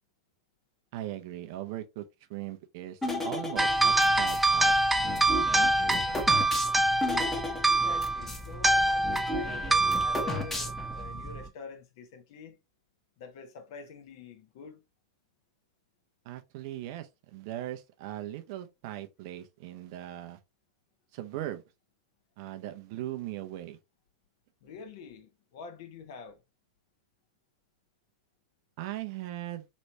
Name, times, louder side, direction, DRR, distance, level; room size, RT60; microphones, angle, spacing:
voice 1, 0.9-2.0 2.3-6.5 16.2-20.4 21.1-21.6 22.4-23.8 28.8-29.7, right 13 dB, 55° right, 0.6 m, -39 dB
sound 1, 3.0-4.5 5.0-8.5 8.7-8.8 9.0-11.0, left 2 dB, 10° left, 1.1 m, -35 dB
sound 2, 3.6-11.5, right 2 dB, 5° right, 0.4 m, -26 dB
voice 2, 7.7-12.6 13.2-14.8 24.6-26.4, left 5 dB, 60° left, 1.0 m, -46 dB
3.2 x 3.1 x 2.7 m
hypercardioid pair, 100°, 2 cm